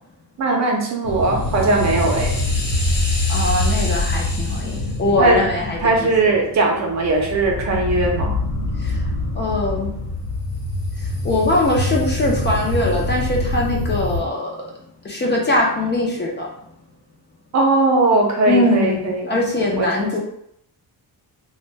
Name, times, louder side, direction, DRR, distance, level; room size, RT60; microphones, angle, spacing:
voice 1, 0.4-2.4 4.8-4.9 5.2-5.4 5.8-8.3 17.5-19.4 19.8-20.2, right 3 dB, 45° right, 1 dB, 0.6 m, -19 dB
sound 1, 1.0-14.2, left 2 dB, 60° left, 1.0 m, -24 dB
voice 2, 3.3-6.1 8.8-9.1 9.3-9.9 11.0-14.7 15.0-16.5 18.5-20.2, left 2 dB, 30° left, -2 dB, 0.5 m, -21 dB
2.5 x 2.2 x 3.2 m, 0.72 s
cardioid pair, 150°, 38 cm